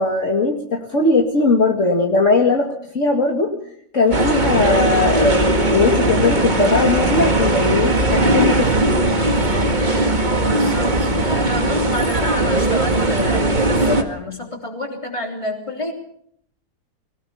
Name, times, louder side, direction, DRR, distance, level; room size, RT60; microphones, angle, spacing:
voice 1, 0.0-3.5 3.9-9.0, left 3 dB, 45° left, 1 dB, 2.3 m, -19 dB
sound 1, 4.1-14.0, right 1 dB, 25° right, 2.0 m, -18 dB
voice 2, 10.4-15.9, left 1 dB, 15° left, 3 dB, 3.5 m, -29 dB
22.5 x 19.0 x 6.9 m, 0.68 s
omnidirectional pair, 1.8 m